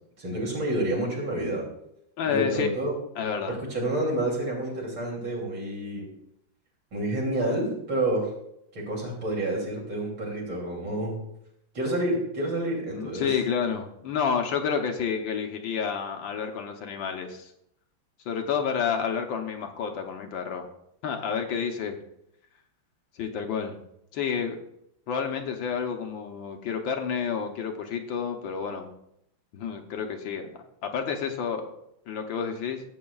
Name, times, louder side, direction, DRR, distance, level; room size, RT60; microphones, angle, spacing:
voice 1, 0.2-1.7 2.3-2.9 3.5-6.1 6.9-8.3 8.7-11.2 11.7-13.4, right 1 dB, 70° right, -3 dB, 3.7 m, -29 dB
voice 2, 2.2-2.7 3.2-3.6 12.9-17.5 18.3-20.7 21.0-22.0 23.2-23.8 24.1-24.6 25.1-28.9 29.5-30.5 30.8-31.7 32.1-32.8, left 6 dB, 75° left, 4 dB, 1.6 m, -29 dB
15.0 x 8.2 x 2.3 m, 0.77 s
omnidirectional pair, 2.2 m